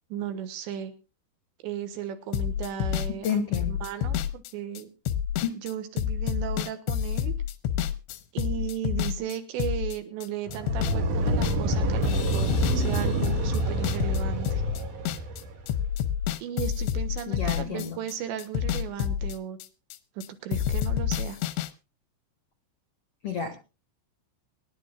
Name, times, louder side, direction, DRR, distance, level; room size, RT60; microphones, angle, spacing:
voice 1, 0.1-0.9 1.6-4.9 5.6-7.3 8.3-14.6 16.4-19.6 20.2-21.4, right 10 dB, 80° right, 9 dB, 3.6 m, -35 dB
sound 1, 2.3-11.0 11.3-15.4 15.7-20.3 20.5-21.7, left 9 dB, 85° left, 3.1 m, -29 dB
voice 2, 3.2-3.7 5.4-5.6 17.3-18.0 23.2-23.6, left 7 dB, 70° left, 7 dB, 1.4 m, -30 dB
sound 2, 10.5-15.7, right 2 dB, 60° right, 2.4 m, -28 dB
24.5 x 10.5 x 2.3 m, 0.30 s
omnidirectional pair, 5.1 m